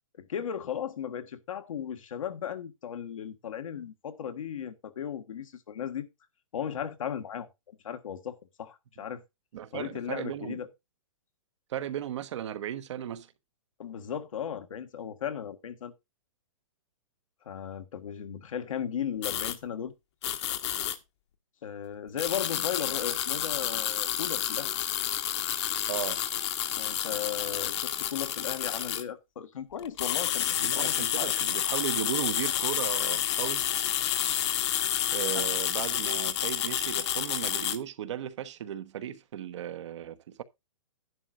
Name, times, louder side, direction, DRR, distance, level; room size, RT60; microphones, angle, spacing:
voice 1, 0.1-6.1 6.5-9.2 9.7-10.7 13.8-15.9 17.4-19.9 21.6-24.7 26.7-31.3 35.3-35.4, left 8 dB, 75° left, 1.6 m, -36 dB
voice 2, 9.5-10.6 11.7-13.3 25.9-26.2 30.6-33.7 35.0-40.4, right 10 dB, 60° right, 1.2 m, -36 dB
sound 1, 19.2-19.6 20.2-21.0 22.2-29.0 29.8-37.8, left 11 dB, 55° left, 1.3 m, -30 dB
11.5 x 11.0 x 2.5 m
hypercardioid pair, 150°, 17 cm